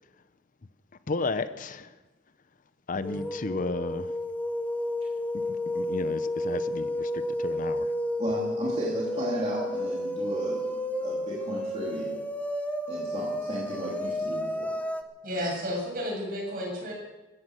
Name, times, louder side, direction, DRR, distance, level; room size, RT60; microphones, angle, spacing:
voice 1, 1.1-1.9 2.9-4.1 5.3-5.4 5.8-7.1 7.4-7.9, left 3 dB, 45° left, 0.7 m, -32 dB
sound 1, 3.0-15.0, left 1 dB, 10° left, 1.1 m, -31 dB
voice 2, 8.2-12.2 12.9-14.8, equal, 35° right, 2.9 m, -34 dB
voice 3, 15.2-16.9, equal, 55° right, 7.3 m, -32 dB
15.0 x 14.0 x 6.4 m
head